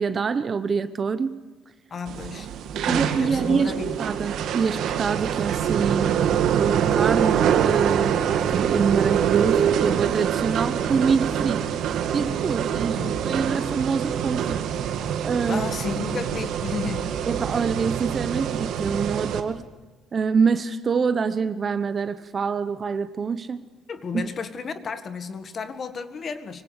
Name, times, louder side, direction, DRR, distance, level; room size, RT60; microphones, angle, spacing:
voice 1, 0.0-1.4 2.9-3.7 4.0-11.6 12.1-14.6 15.2-15.7 17.3-19.6 20.1-23.6 24.1-24.2, right 5 dB, 30° right, 0.9 m, -25 dB
voice 2, 1.9-4.0 13.0-13.2 15.5-17.3 23.9-26.6, left 5 dB, 30° left, 1.8 m, -33 dB
sound 1, 2.1-19.4, right 9 dB, 60° right, 2.0 m, -25 dB
25.0 x 24.5 x 8.1 m
cardioid pair, 165°, 0 cm